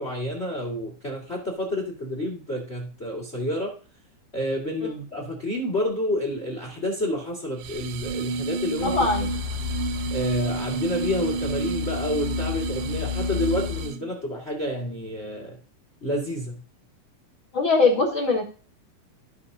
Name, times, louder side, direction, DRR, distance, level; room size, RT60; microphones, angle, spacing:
voice 1, 0.0-3.7 4.3-9.0 10.1-15.6 16.0-16.6, left 1 dB, 25° left, 0 dB, 1.6 m, -29 dB
sound 1, 7.6-14.1, right 4 dB, 80° right, 2.1 m, -30 dB
sound 2, 8.8-13.9, left 9 dB, 85° left, 3.1 m, -33 dB
voice 2, 8.8-9.3 17.5-18.5, left 3 dB, 65° left, 0 dB, 1.2 m, -21 dB
15.5 x 5.2 x 2.7 m, 0.37 s
omnidirectional pair, 3.9 m